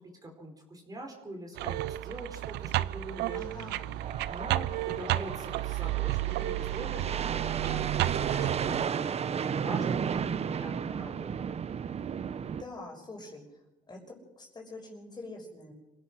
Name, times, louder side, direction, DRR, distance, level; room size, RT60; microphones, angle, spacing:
voice 1, 0.0-3.4 4.3-11.5, right 1 dB, 20° right, 2 dB, 4.6 m, -43 dB
sound 1, 1.6-8.9, right 16 dB, 85° right, 0.6 m, -32 dB
voice 2, 3.3-4.0 12.4-13.4 13.9-14.0 14.4-15.7, left 2 dB, 25° left, 1 dB, 6.1 m, -45 dB
sound 2, 4.0-12.6, right 7 dB, 40° right, 0.9 m, -34 dB
27.0 x 17.0 x 6.2 m, 1.0 s
cardioid pair, 110°, 17 cm